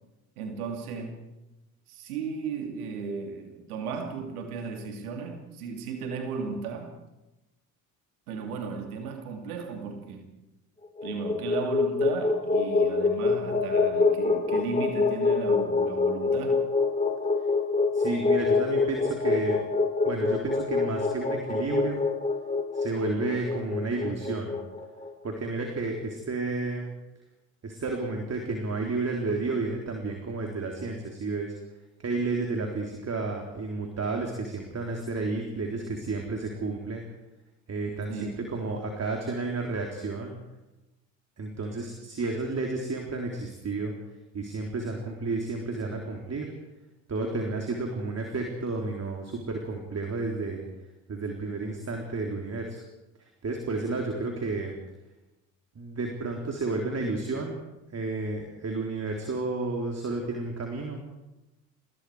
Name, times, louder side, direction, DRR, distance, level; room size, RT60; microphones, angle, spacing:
voice 1, 0.4-1.2 1.9-6.9 8.3-10.3 11.0-16.7 38.1-38.4, right 5 dB, 85° right, 4 dB, 2.8 m, -35 dB
sound 1, 10.8-25.1, left 4 dB, 15° left, 4.2 m, -25 dB
voice 2, 17.9-19.7 20.1-22.0 22.7-24.6 25.2-26.9 27.6-31.6 32.0-37.0 37.7-40.3 41.4-43.9 44.3-46.5 47.1-50.6 51.1-52.8 53.2-54.8 55.8-57.5 57.9-61.0, right 3 dB, 35° right, 2 dB, 3.7 m, -31 dB
27.5 x 20.0 x 4.9 m, 1.0 s
hypercardioid pair, 60°, 43 cm